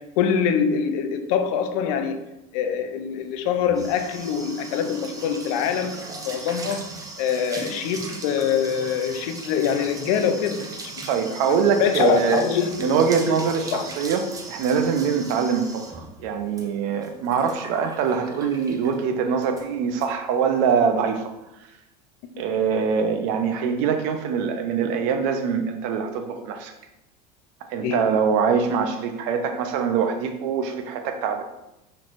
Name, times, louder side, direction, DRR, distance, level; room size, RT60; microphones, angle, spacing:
voice 1, 0.0-2.2 2.5-6.9 7.2-10.7 11.0-13.3 13.7-13.9 27.8-28.1, left 7 dB, 70° left, 7 dB, 0.6 m, -24 dB
sound 1, 3.3-19.0 19.4-19.7 20.0-20.1 20.4-20.7, right 3 dB, 20° right, 0.6 m, -38 dB
voice 2, 11.1-12.5 12.8-21.3 22.4-26.7 27.7-31.4, right 6 dB, 65° right, 6 dB, 0.6 m, -23 dB
5.8 x 3.2 x 2.5 m, 0.91 s
supercardioid pair, 135°, 19 cm